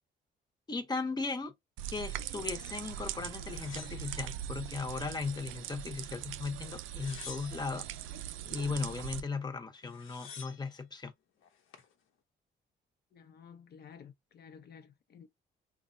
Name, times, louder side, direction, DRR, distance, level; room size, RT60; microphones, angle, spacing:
voice 1, 0.7-1.5 1.9-7.9 8.5-11.1, left 4 dB, 20° left, 0.8 m, -37 dB
sound 1, 1.8-9.2, right 11 dB, 85° right, 0.4 m, -41 dB
sound 2, 3.4-4.8 5.2-6.0 6.8-7.9 9.4-9.5 9.7-10.7 11.4-11.9, left 7 dB, 85° left, 0.9 m, -50 dB
voice 2, 13.1-15.3, left 7 dB, 55° left, 0.6 m, -53 dB
3.1 x 2.3 x 2.6 m
cardioid pair, 90°, 20 cm